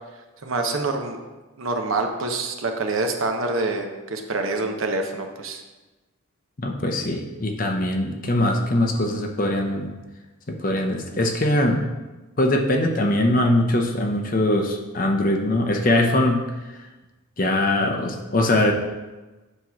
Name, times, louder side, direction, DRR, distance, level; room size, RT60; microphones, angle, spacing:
voice 1, 0.4-1.2 1.6-5.6, right 3 dB, 70° right, 4 dB, 0.8 m, -26 dB
voice 2, 6.6-9.9 10.5-11.9 12.4-16.4 17.4-18.7, left 1 dB, 40° left, 3 dB, 0.7 m, -22 dB
8.1 x 3.1 x 5.7 m, 1.2 s
head